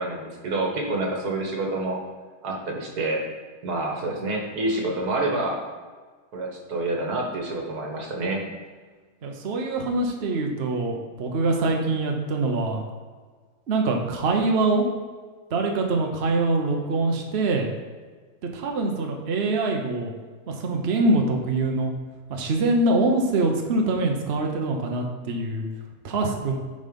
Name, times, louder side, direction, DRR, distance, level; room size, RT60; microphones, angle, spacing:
voice 1, 0.0-2.0 2.4-3.2 3.6-5.6 6.3-8.5, right 2 dB, 85° right, 0 dB, 2.0 m, -27 dB
voice 2, 9.2-12.8 13.7-14.9 15.5-17.7 18.5-20.1 20.6-21.9 22.3-25.7 26.0-26.5, right 2 dB, 50° right, 2 dB, 1.1 m, -24 dB
9.1 x 4.0 x 5.2 m, 1.5 s
omnidirectional pair, 1.6 m